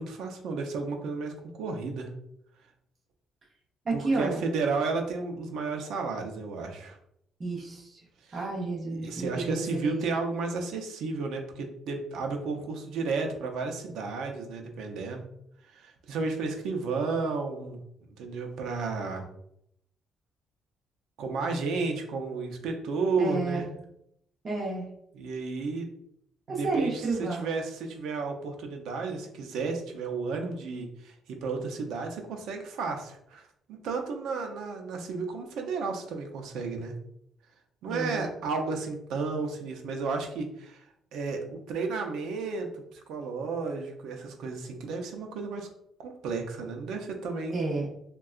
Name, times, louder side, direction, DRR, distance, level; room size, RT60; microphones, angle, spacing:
voice 1, 0.0-2.1 3.9-7.0 8.3-8.4 9.0-15.3 15.7-17.8 18.2-19.2 21.2-23.7 25.1-25.9 26.5-33.4 33.7-36.9 37.8-40.8 41.1-45.7 46.0-47.6, right 4 dB, 85° right, 3 dB, 0.5 m, -32 dB
voice 2, 3.8-4.4 7.4-8.0 8.3-10.0 23.2-23.6 24.4-24.9 26.5-27.5 37.9-38.3 47.5-47.9, right 3 dB, 30° right, -4 dB, 0.8 m, -31 dB
3.6 x 2.2 x 2.4 m, 0.75 s
cardioid pair, 125°, 0 cm